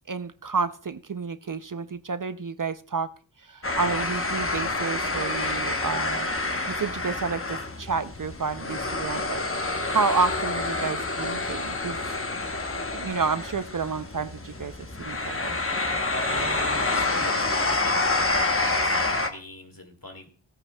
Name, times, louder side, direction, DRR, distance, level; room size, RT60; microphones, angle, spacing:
voice 1, 0.1-3.1 3.4-6.3 6.7-9.4 9.7-12.0 12.9-14.7 15.0-15.6, right 5 dB, 45° right, 12 dB, 0.5 m, -30 dB
sound 1, 3.6-19.3, left 2 dB, 30° left, 0.9 m, -28 dB
voice 2, 8.8-9.2 16.1-20.3, left 1 dB, 45° left, 5 dB, 2.1 m, -42 dB
18.0 x 8.6 x 2.2 m, 0.39 s
wide cardioid pair, 45°, 46 cm